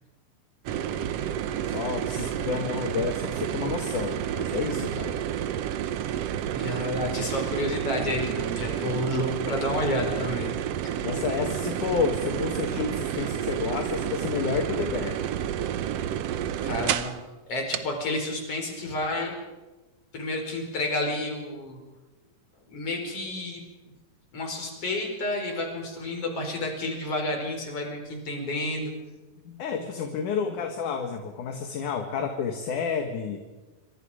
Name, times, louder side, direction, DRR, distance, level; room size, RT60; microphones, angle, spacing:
sound 1, 0.7-17.2 17.7-17.8, right 10 dB, 70° right, 1.5 m, -30 dB
voice 1, 1.6-5.2 11.0-15.2 29.5-33.4, left 6 dB, 70° left, 4 dB, 3.0 m, -30 dB
voice 2, 6.4-10.5 10.8-10.9 16.6-17.1 17.5-19.3 20.1-21.8 22.7-23.6 24.3-28.9, left 1 dB, 45° left, 2 dB, 5.6 m, -30 dB
27.5 x 25.0 x 5.1 m, 1.2 s
omnidirectional pair, 3.9 m